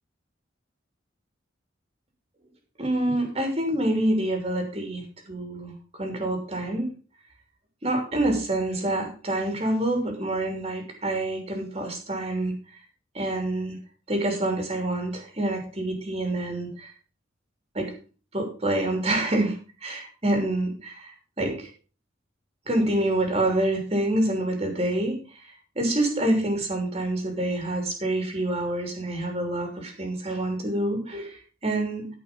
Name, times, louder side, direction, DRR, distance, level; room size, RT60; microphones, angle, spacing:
voice 1, 2.8-6.9 7.8-12.5 13.1-13.8 14.1-16.9 17.7-17.9 18.3-21.7 22.7-25.5 25.7-32.1, right 1 dB, 30° right, 3 dB, 2.9 m, -27 dB
14.0 x 5.6 x 5.3 m, 0.37 s
head